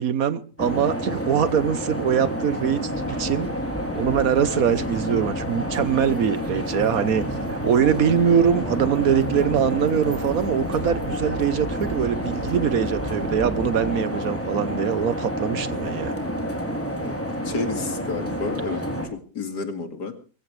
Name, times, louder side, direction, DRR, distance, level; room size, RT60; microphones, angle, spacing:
voice 1, 0.0-2.8 3.1-3.5 3.9-16.1, right 8 dB, 65° right, 1.4 m, -23 dB
sound 1, 0.6-19.1, equal, 10° left, 3.2 m, -29 dB
sound 2, 2.9-13.9, equal, 10° right, 8.1 m, -37 dB
voice 2, 16.8-18.8 19.1-20.1, left 3 dB, 85° left, 2.8 m, -31 dB
22.0 x 15.5 x 3.3 m
omnidirectional pair, 1.7 m